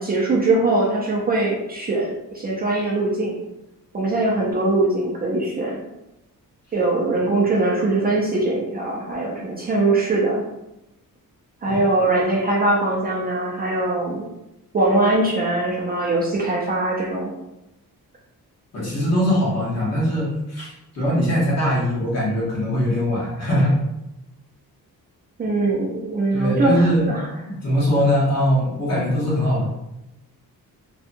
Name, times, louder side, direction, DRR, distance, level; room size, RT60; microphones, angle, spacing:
voice 1, 0.0-3.4 3.9-5.8 6.7-10.4 11.6-14.2 14.7-17.3 25.4-27.2, right 2 dB, 25° right, -5 dB, 0.4 m, -21 dB
voice 2, 18.7-23.8 26.3-27.1 27.5-29.7, equal, 45° left, -6 dB, 1.1 m, -21 dB
2.7 x 2.2 x 2.5 m, 0.91 s
cardioid pair, 145°, 36 cm